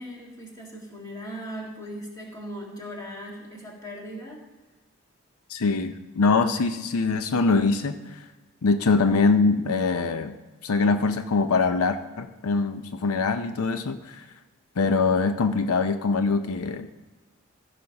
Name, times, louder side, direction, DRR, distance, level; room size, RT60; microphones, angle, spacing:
voice 1, 0.0-4.4, equal, 15° left, -2 dB, 2.0 m, -38 dB
voice 2, 5.5-8.2 8.6-10.4 10.6-14.2 14.8-16.9, left 4 dB, 80° left, 9 dB, 0.6 m, -23 dB
15.0 x 5.0 x 5.8 m, 1.2 s
head